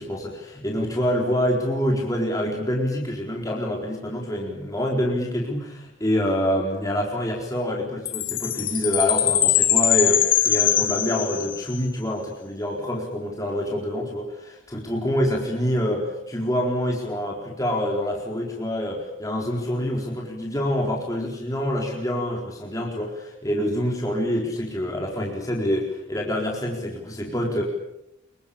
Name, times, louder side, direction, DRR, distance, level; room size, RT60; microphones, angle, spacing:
voice 1, 0.0-27.6, equal, 15° left, -1 dB, 4.3 m, -26 dB
Chime, 8.1-11.8, left 11 dB, 45° left, 2.4 m, -22 dB
26.5 x 24.0 x 8.8 m, 0.83 s
head